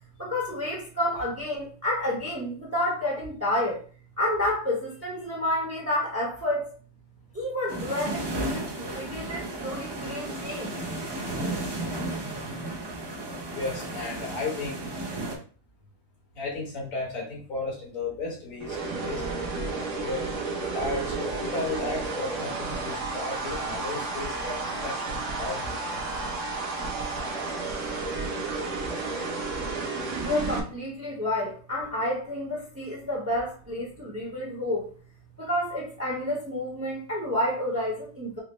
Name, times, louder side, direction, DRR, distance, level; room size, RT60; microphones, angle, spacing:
voice 1, 0.2-3.8 4.2-6.7 7.3-10.8 30.2-34.9 35.4-38.4, left 1 dB, 15° right, 0.7 m, -30 dB
sound 1, 7.7-15.4, right 1 dB, 40° right, 0.3 m, -34 dB
voice 2, 13.5-14.8 16.3-19.2 19.5-20.3 20.7-26.0, left 3 dB, 65° left, 1.8 m, -34 dB
sound 2, 18.6-30.6, right 3 dB, 60° right, 1.1 m, -32 dB
4.8 x 2.0 x 3.0 m
omnidirectional pair, 1.5 m